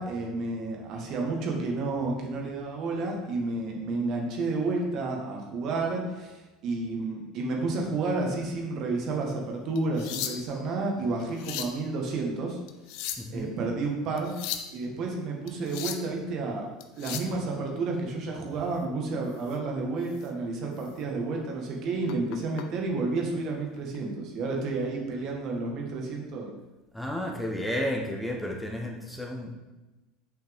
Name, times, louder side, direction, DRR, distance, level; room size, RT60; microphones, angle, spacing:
voice 1, 0.0-12.6 13.3-14.3 14.7-16.7 17.0-26.5, right 3 dB, 55° right, 0 dB, 1.6 m, -31 dB
sound 1, 9.8-10.7 11.2-11.8 12.7-13.4 14.2-14.7 15.5-16.1 16.8-17.3 19.4-19.6 20.1-20.3 20.8-20.9 22.1-22.7 23.8-24.0, left 10 dB, 65° left, 0.5 m, -36 dB
voice 2, 13.2-13.5 26.9-29.5, left 1 dB, 5° left, 0 dB, 1.1 m, -32 dB
6.3 x 5.6 x 3.6 m, 1.1 s
hypercardioid pair, 85°, 0 cm